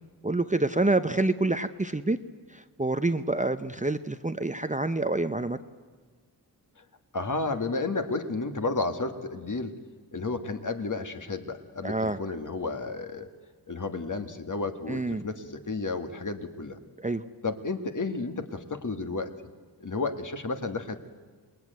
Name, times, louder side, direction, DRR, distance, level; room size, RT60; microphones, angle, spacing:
voice 1, 0.2-2.2 2.5-5.6 11.8-12.2 14.9-15.2 17.0-17.2, right 2 dB, 20° right, 10 dB, 0.7 m, -27 dB
voice 2, 7.1-9.8 10.1-13.3 13.7-16.8 17.4-19.3 19.8-21.1, left 3 dB, 45° left, 7 dB, 1.8 m, -32 dB
27.5 x 20.5 x 9.4 m, 1.5 s
wide cardioid pair, 100°, 41 cm